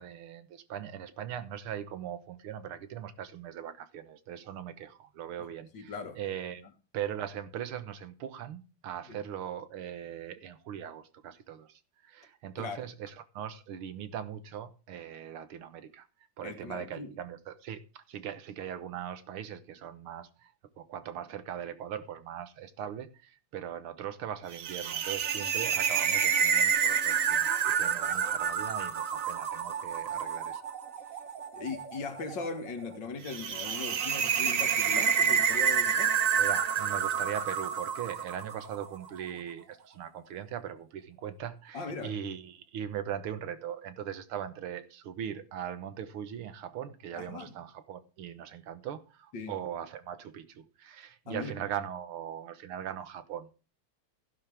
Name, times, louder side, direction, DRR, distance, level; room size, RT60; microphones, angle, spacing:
voice 1, 0.0-6.6 6.9-16.1 16.4-20.5 20.8-30.6 36.4-53.5, right 9 dB, 85° right, 2.0 m, -40 dB
voice 2, 5.7-6.2 9.1-9.2 12.6-12.9 16.4-17.2 31.5-36.2 41.7-42.2 47.1-47.5 49.3-49.5 51.3-51.5, left 4 dB, 60° left, 2.3 m, -39 dB
sound 1, 24.5-38.9, right 7 dB, 55° right, 1.0 m, -29 dB
15.5 x 11.0 x 3.5 m
omnidirectional pair, 2.3 m